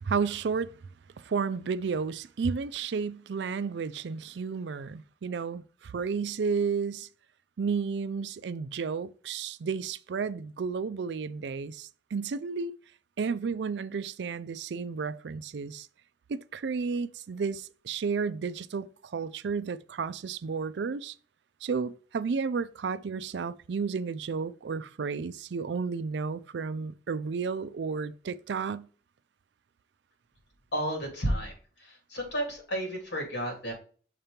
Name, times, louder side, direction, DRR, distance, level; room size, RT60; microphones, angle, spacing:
voice 1, 0.0-0.7 1.2-7.1 7.6-12.7 13.2-15.9 16.3-18.9 19.1-21.1 21.6-28.9, right 5 dB, 75° right, 0.4 m, -32 dB
voice 2, 30.7-31.5 31.8-33.7, equal, 80° left, 2.9 m, -32 dB
6.6 x 3.0 x 5.1 m
head